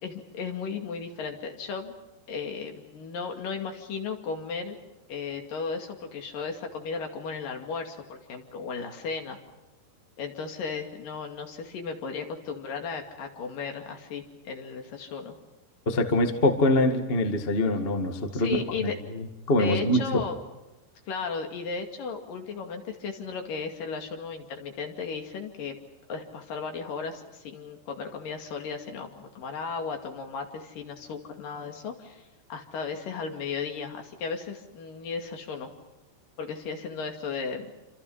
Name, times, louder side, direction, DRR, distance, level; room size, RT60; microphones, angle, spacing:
voice 1, 0.0-1.9 2.3-4.8 5.1-9.4 10.2-15.3 18.3-19.0 19.6-20.4 21.1-25.8 26.1-35.7 36.4-37.7, left 5 dB, 60° left, 4 dB, 3.7 m, -35 dB
voice 2, 15.8-18.9 19.1-20.2, left 1 dB, 35° left, 5 dB, 0.9 m, -24 dB
27.5 x 27.0 x 5.6 m, 1.0 s
omnidirectional pair, 4.8 m